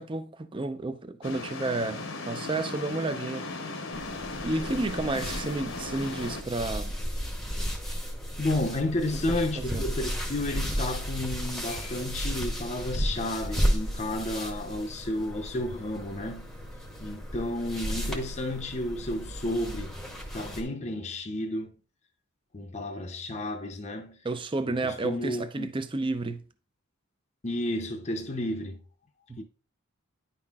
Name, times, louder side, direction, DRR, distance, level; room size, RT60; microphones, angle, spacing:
voice 1, 0.0-3.5 4.4-6.9 9.3-9.8 24.2-26.4 29.3-29.4, right 2 dB, 20° right, 0.4 m, -31 dB
sound 1, 1.2-6.4, left 3 dB, 60° left, 0.8 m, -37 dB
sound 2, 3.9-20.6, equal, ahead, 0.8 m, -34 dB
voice 2, 8.4-16.5 17.0-19.9 20.3-21.7 22.5-24.2 24.8-25.7 27.4-28.8 29.4-29.5, left 1 dB, 30° left, 0.6 m, -32 dB
9.7 x 5.6 x 2.3 m
head